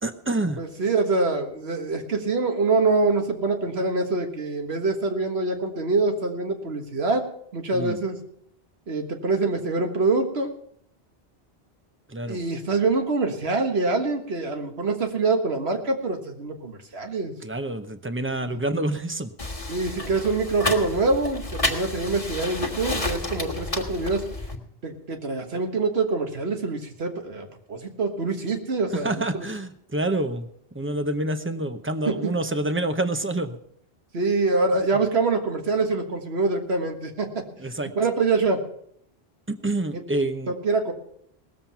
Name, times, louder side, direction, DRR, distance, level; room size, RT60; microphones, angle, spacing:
voice 1, 0.0-0.6 7.7-8.0 12.1-12.4 17.4-19.3 28.9-30.5 30.7-33.6 37.6-37.9 39.5-40.5, right 1 dB, 15° right, 9 dB, 0.7 m, -27 dB
voice 2, 0.6-7.2 7.5-8.2 8.9-10.5 12.3-17.3 19.7-24.3 24.8-29.5 32.1-32.3 34.1-37.4 38.0-38.6 40.5-40.9, right 3 dB, 75° right, 4 dB, 1.8 m, -25 dB
sound 1, 19.4-24.6, left 2 dB, 35° left, 1.7 m, -30 dB
18.5 x 7.5 x 5.7 m, 0.69 s
omnidirectional pair, 1.1 m